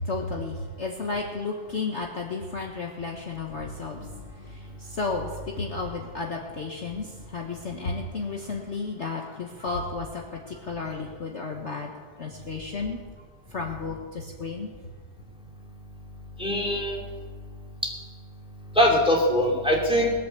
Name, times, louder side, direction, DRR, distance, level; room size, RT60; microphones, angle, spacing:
voice 1, 0.0-4.0 4.4-11.9 12.2-13.0 13.5-14.7, left 3 dB, 45° left, 0 dB, 1.4 m, -33 dB
voice 2, 16.4-17.0 17.8-17.9 18.8-20.1, left 1 dB, 5° right, -1 dB, 2.5 m, -22 dB
19.5 x 8.4 x 7.1 m, 1.5 s
omnidirectional pair, 1.8 m